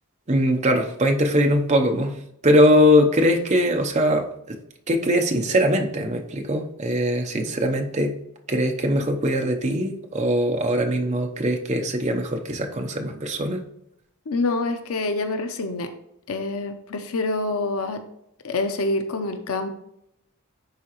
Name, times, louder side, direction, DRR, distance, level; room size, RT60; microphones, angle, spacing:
voice 1, 0.3-4.6 4.9-8.2 8.5-13.6, equal, 30° right, 3 dB, 0.7 m, -21 dB
voice 2, 14.3-15.9 16.3-18.0 18.4-19.7, left 2 dB, 80° left, 7 dB, 0.7 m, -26 dB
10.5 x 3.7 x 3.0 m, 0.78 s
head